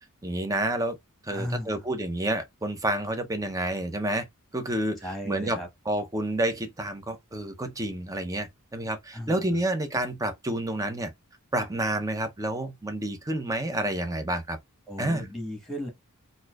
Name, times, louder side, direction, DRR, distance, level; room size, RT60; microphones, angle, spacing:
voice 1, 0.2-1.0 1.2-4.3 4.5-5.6 5.9-11.1 11.5-14.6 15.0-15.3, right 1 dB, 15° right, 0.5 m, -29 dB
voice 2, 1.3-1.8 5.0-5.7 9.1-9.4 14.9-15.9, equal, ahead, 1.2 m, -35 dB
4.0 x 2.5 x 2.3 m
head